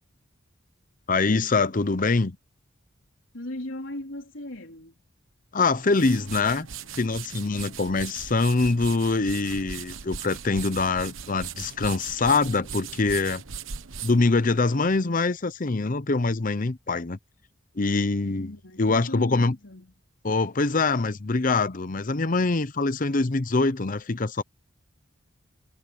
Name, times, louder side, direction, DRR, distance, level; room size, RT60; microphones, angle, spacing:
voice 1, 1.1-2.4 5.5-6.7 6.9-13.4 14.0-17.2 17.8-18.5 18.8-19.5 20.2-24.4, left 3 dB, 45° left, 0.8 m, -24 dB
voice 2, 3.3-5.0 18.3-19.9, left 1 dB, 75° left, 3.7 m, -37 dB
sound 1, 5.7-15.1, right 7 dB, 85° right, 1.2 m, -39 dB
head